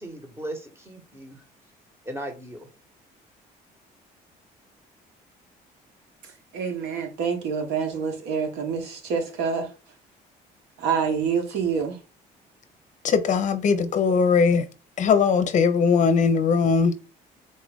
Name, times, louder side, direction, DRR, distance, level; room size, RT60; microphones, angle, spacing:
voice 1, 0.0-1.4 2.0-2.7, right 1 dB, 15° right, 1.2 m, -37 dB
voice 2, 6.5-9.7 10.8-12.0, right 6 dB, 85° right, 1.2 m, -27 dB
voice 3, 13.0-14.6 15.0-17.0, left 5 dB, 45° left, 0.6 m, -20 dB
4.1 x 2.4 x 3.5 m
cardioid pair, 110°, 17 cm